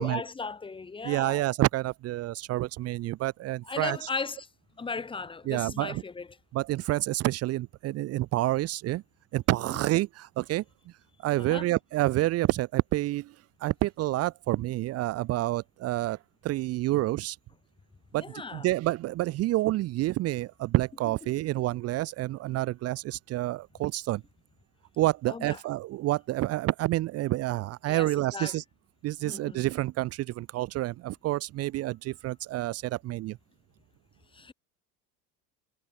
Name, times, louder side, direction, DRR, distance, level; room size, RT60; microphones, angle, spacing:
voice 1, 0.0-1.4 3.6-4.5 4.8-6.3 9.7-9.8 11.4-11.7 18.1-18.7 25.3-25.6 27.9-28.6 29.2-29.6 34.3-34.5, left 4 dB, 15° left, 6.0 m, -37 dB
voice 2, 1.0-4.1 5.5-6.0 6.5-9.0 9.3-10.6 11.2-13.3 13.6-16.2 16.4-17.4 18.1-18.2 18.5-24.2 25.0-28.6 29.0-33.4, right 16 dB, 40° right, 1.2 m, -28 dB
cardioid pair, 165°, 36 cm